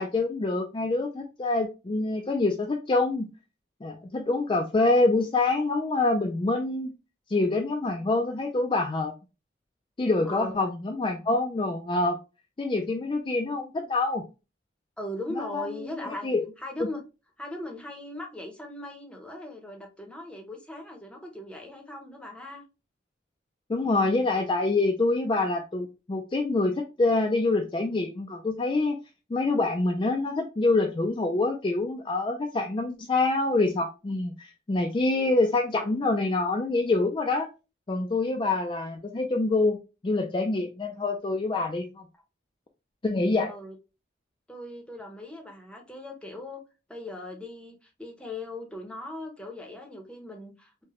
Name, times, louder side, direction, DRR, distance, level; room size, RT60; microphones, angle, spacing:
voice 1, 0.0-3.3 3.8-6.9 7.3-9.1 10.0-12.2 12.6-14.3 15.4-15.8 16.2-16.4 23.7-29.0 29.3-37.5 37.9-42.1 43.0-43.5, left 2 dB, 25° left, 0.3 m, -26 dB
voice 2, 15.0-16.3 16.6-17.0 17.4-22.6 43.5-43.8 44.5-46.6 46.9-50.8, left 1 dB, 5° left, 0.7 m, -39 dB
4.7 x 2.1 x 2.9 m
head